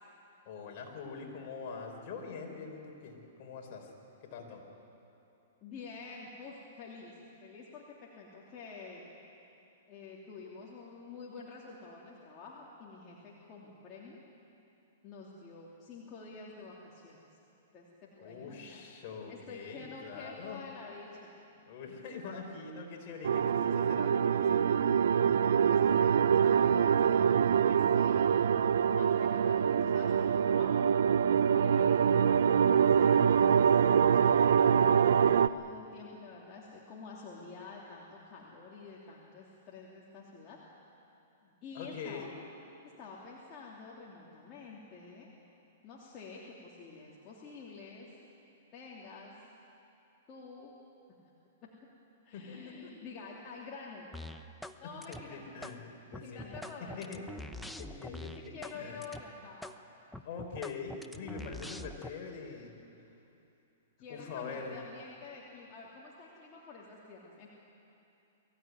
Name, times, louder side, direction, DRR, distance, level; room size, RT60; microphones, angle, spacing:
voice 1, 0.4-3.9 4.2-4.6 18.2-20.6 21.7-24.7 41.7-42.3 52.3-52.9 54.8-56.6 57.0-57.2 57.8-59.0 60.2-62.7 64.1-64.8, left 5 dB, 45° left, 1 dB, 4.5 m, -44 dB
voice 2, 5.6-9.1 9.9-14.2 15.0-17.2 17.7-17.9 18.2-18.8 19.3-21.3 25.7-28.2 28.9-31.0 31.5-40.6 41.4-42.3 43.0-45.3 45.8-48.1 48.7-49.3 50.3-50.7 52.2-54.1 54.8-55.4 56.2-57.1 58.2-59.7 64.0-67.5, left 4 dB, 30° left, -5 dB, 3.0 m, -49 dB
sound 1, 23.2-35.5, right 7 dB, 80° right, 0.5 m, -25 dB
sound 2, 54.1-54.8 55.0-55.8 56.1-58.8 59.0-59.2 59.6-59.8 60.1-62.1, left 1 dB, ahead, 0.8 m, -44 dB
22.5 x 15.5 x 9.7 m, 2.8 s
hypercardioid pair, 140°, 0 cm